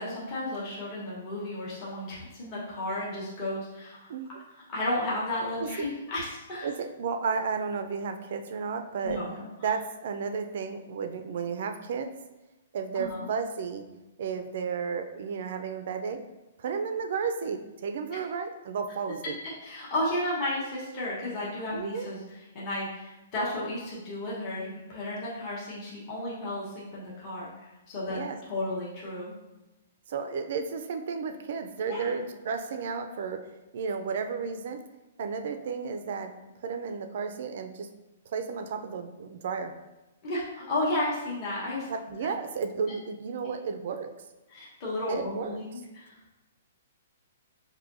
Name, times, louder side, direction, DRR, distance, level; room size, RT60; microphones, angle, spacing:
voice 1, 0.0-4.1 4.7-6.7 9.0-9.5 12.9-13.3 19.6-22.2 22.5-28.2 28.5-29.3 31.9-32.1 40.2-41.9 44.5-46.1, left 1 dB, 25° left, -7 dB, 1.0 m, -33 dB
voice 2, 4.1-4.4 5.6-5.9 6.6-9.2 9.6-12.1 12.7-13.8 14.2-16.2 16.6-19.4 21.7-22.1 28.1-28.4 30.1-33.4 33.7-34.8 35.2-36.3 36.6-37.9 38.3-39.7 41.9-44.1 45.1-45.6, right 5 dB, 50° right, 7 dB, 0.4 m, -33 dB
6.1 x 2.6 x 2.6 m, 1.0 s
hypercardioid pair, 170°, 0 cm